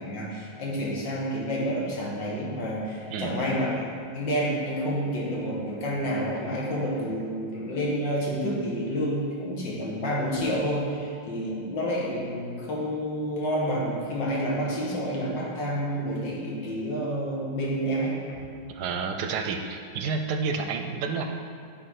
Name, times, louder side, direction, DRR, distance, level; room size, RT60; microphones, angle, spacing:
voice 1, 0.0-18.4, equal, 90° left, -4 dB, 2.1 m, -29 dB
voice 2, 18.7-21.3, right 5 dB, 75° right, 5 dB, 1.0 m, -29 dB
10.5 x 4.1 x 4.8 m, 2.3 s
omnidirectional pair, 2.0 m